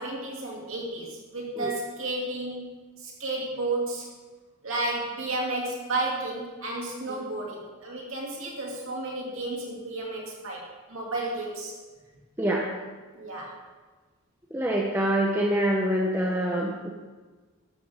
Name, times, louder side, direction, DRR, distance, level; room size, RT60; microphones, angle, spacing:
voice 1, 0.0-2.7 3.0-4.1 4.6-11.7 13.1-13.6, right 2 dB, 65° right, -3 dB, 2.7 m, -32 dB
voice 2, 12.4-12.7 14.5-16.9, right 1 dB, 10° right, -2 dB, 0.9 m, -25 dB
13.5 x 12.5 x 3.6 m, 1.3 s
head